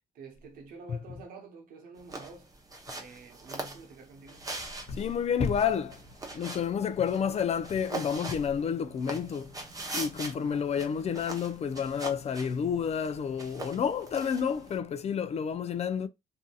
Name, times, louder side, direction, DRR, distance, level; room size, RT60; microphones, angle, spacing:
voice 1, 0.1-2.5 2.9-4.5 10.4-10.7, right 3 dB, 90° right, 0.9 m, -48 dB
sound 1, 2.0-14.8, right 2 dB, 25° right, 0.9 m, -42 dB
sound 2, 4.3-14.8, right 3 dB, 50° right, 1.1 m, -56 dB
voice 2, 4.9-6.0 6.3-9.5 9.9-16.1, left 7 dB, 50° left, 0.5 m, -30 dB
2.6 x 2.6 x 2.3 m
cardioid pair, 90°, 14 cm